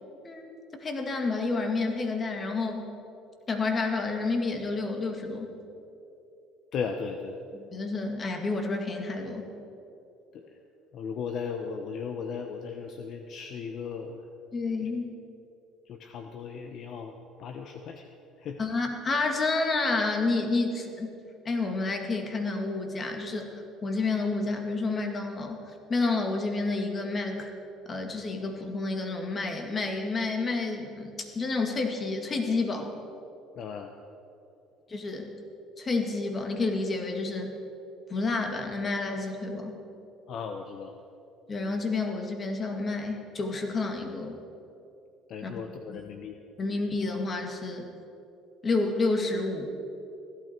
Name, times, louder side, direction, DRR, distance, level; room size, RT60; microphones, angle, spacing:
voice 1, 0.8-2.9 3.5-5.6 7.6-9.4 14.5-15.1 18.6-21.1 21.4-27.5 27.9-32.9 34.9-35.3 35.8-37.6 38.1-39.7 41.5-44.4 45.4-45.6 45.9-46.0 46.6-47.9 48.6-49.7, left 3 dB, 30° left, 4 dB, 1.9 m, -29 dB
voice 2, 6.7-7.6 10.3-10.5 10.9-14.2 15.9-17.1 17.4-18.0 18.4-18.6 33.6-33.9 40.3-40.9 45.3-46.4, left 6 dB, 55° left, 5 dB, 0.8 m, -36 dB
16.0 x 12.0 x 4.5 m, 2.8 s
supercardioid pair, 90°, 0 cm